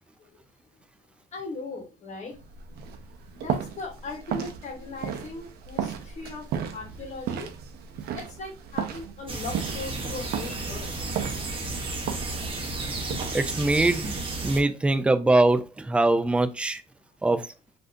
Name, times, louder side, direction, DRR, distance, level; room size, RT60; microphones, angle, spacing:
voice 1, 1.3-2.4 3.3-7.5 8.1-10.9, left 3 dB, 45° left, 1.0 m, -38 dB
sound 1, 2.3-14.5, right 8 dB, 70° right, 0.5 m, -35 dB
sound 2, 9.3-14.6, right 2 dB, 30° right, 0.8 m, -33 dB
voice 2, 13.3-14.1 14.4-16.8 17.2-17.5, right 2 dB, 5° right, 0.3 m, -22 dB
3.5 x 2.5 x 2.5 m
cardioid pair, 110°, 17 cm